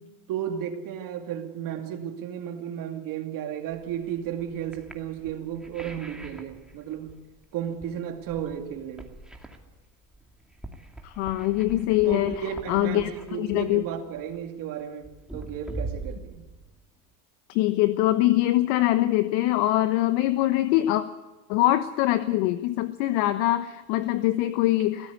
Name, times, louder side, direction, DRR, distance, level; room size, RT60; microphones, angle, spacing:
voice 1, 0.3-7.1 7.5-9.1 12.0-15.1 15.3-16.4, right 9 dB, 45° right, 2.6 m, -33 dB
sound 1, 3.8-17.1, right 2 dB, ahead, 2.4 m, -43 dB
voice 2, 11.0-13.9 17.5-21.0 21.5-25.1, left 15 dB, 60° left, 1.2 m, -23 dB
23.0 x 15.5 x 8.5 m
supercardioid pair, 125°, 45 cm